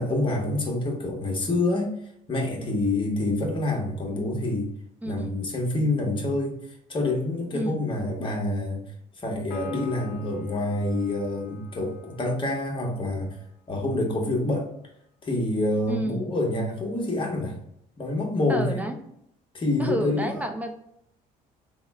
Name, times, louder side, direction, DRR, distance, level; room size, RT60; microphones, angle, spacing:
voice 1, 0.0-1.9 2.3-4.7 5.0-6.6 6.9-8.8 9.2-13.4 13.7-14.7 15.2-17.6 18.0-18.9 19.5-20.3, left 2 dB, 30° left, 0 dB, 1.0 m, -27 dB
voice 2, 5.0-5.4 7.5-7.9 15.9-16.4 18.5-19.0 19.8-20.8, right 1 dB, 10° right, 4 dB, 0.4 m, -31 dB
Piano, 9.5-13.1, left 9 dB, 80° left, 0.4 m, -43 dB
3.5 x 2.1 x 3.4 m, 0.74 s
cardioid pair, 110°, 17 cm